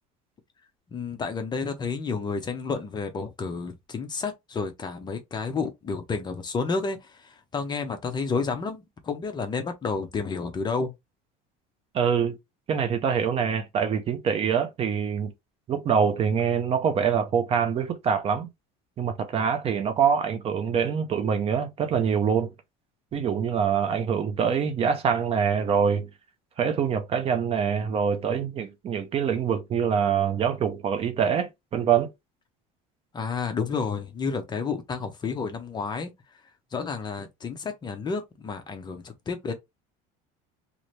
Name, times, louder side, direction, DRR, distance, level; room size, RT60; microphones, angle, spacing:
voice 1, 0.9-10.9 33.1-36.1 36.7-39.5, left 4 dB, 25° left, 0.6 m, -30 dB
voice 2, 11.9-12.4 12.7-15.3 15.7-18.5 19.0-22.5 23.1-26.1 26.6-32.1, right 7 dB, 35° right, 0.6 m, -25 dB
2.8 x 2.5 x 3.1 m
cardioid pair, 135°, 18 cm